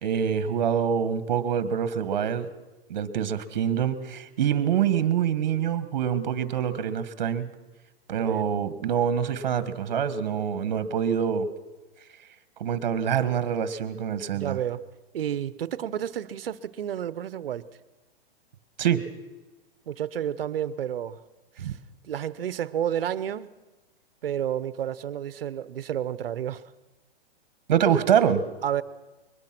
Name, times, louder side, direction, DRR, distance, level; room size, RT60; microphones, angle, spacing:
voice 1, 0.0-2.5 2.9-7.5 8.1-11.5 12.6-14.6 18.8-19.0 21.6-21.7 27.7-28.4, right 8 dB, 45° right, 13 dB, 1.6 m, -25 dB
voice 2, 14.3-14.8 15.1-17.7 19.9-21.2 21.6-21.7 22.0-23.5 24.2-26.6 28.6-28.8, right 10 dB, 65° right, 16 dB, 1.0 m, -30 dB
22.0 x 20.0 x 6.1 m, 1.2 s
hypercardioid pair, 180°, 31 cm